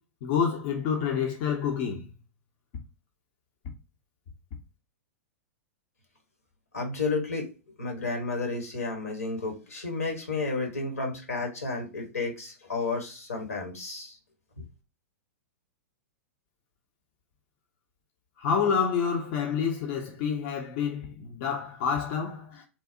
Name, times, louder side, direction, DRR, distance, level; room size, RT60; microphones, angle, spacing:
voice 1, 0.2-2.1 18.4-22.6, left 7 dB, 45° left, 0.5 m, -28 dB
voice 2, 6.7-7.5 7.8-14.1, left 3 dB, 80° left, 1.0 m, -32 dB
2.7 x 2.0 x 2.4 m
figure-of-eight pair, 105°, 8 cm